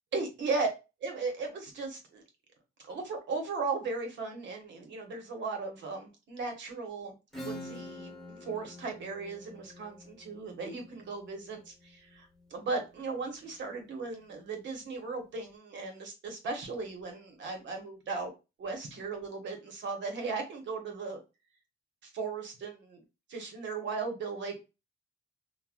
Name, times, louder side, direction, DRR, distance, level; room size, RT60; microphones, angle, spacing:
voice 1, 0.1-0.7 1.0-2.2 2.8-7.1 7.4-18.3 18.6-21.2 22.0-23.0 23.3-24.6, right 4 dB, 65° right, 3 dB, 1.1 m, -37 dB
Acoustic guitar / Strum, 7.3-12.7, left 1 dB, ahead, 1.3 m, -46 dB
3.2 x 2.2 x 2.4 m, 0.27 s
cardioid pair, 90°, 20 cm